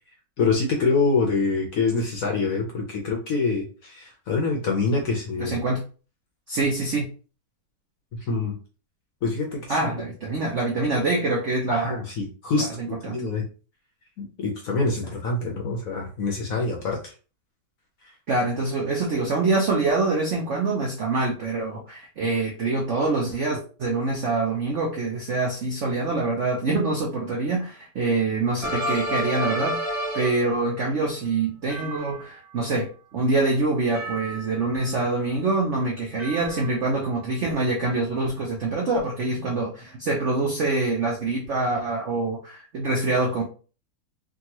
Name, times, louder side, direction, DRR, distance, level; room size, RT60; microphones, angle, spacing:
voice 1, 0.4-5.6 8.2-8.5 9.2-9.8 11.7-13.4 14.2-17.0, left 3 dB, 65° left, 0 dB, 0.9 m, -25 dB
voice 2, 5.4-5.8 6.5-7.1 9.7-12.0 12.6-13.2 18.3-43.4, right 3 dB, 80° right, -1 dB, 0.6 m, -25 dB
sound 1, 28.6-30.6 31.7-32.6 33.9-34.9 36.2-37.1, equal, 40° right, 1.0 m, -31 dB
3.6 x 2.3 x 2.9 m, 0.37 s
omnidirectional pair, 2.1 m